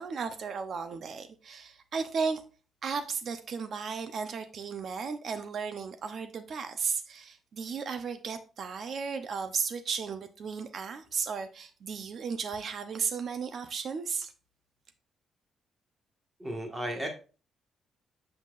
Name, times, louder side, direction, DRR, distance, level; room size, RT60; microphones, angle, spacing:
voice 1, 0.0-2.4 2.8-14.3, right 5 dB, 55° right, 0.8 m, -35 dB
voice 2, 16.4-17.1, right 1 dB, 15° right, 1.7 m, -34 dB
7.3 x 5.9 x 2.5 m
cardioid pair, 125°, 0 cm